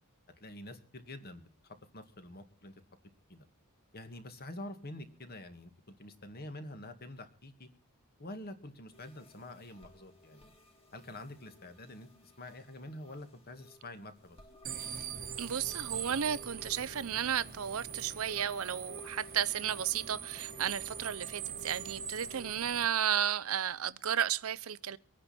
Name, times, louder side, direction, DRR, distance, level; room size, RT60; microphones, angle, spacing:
voice 1, 0.4-2.7 3.3-3.4 3.9-7.7 8.2-10.5 10.9-14.4, left 1 dB, 45° left, 2.1 m, -47 dB
sound 1, 8.9-22.5, left 1 dB, 25° left, 3.1 m, -55 dB
sound 2, 14.6-22.8, right 8 dB, 40° right, 1.2 m, -43 dB
voice 2, 15.4-25.0, right 9 dB, 70° right, 0.6 m, -33 dB
24.0 x 9.8 x 4.3 m
head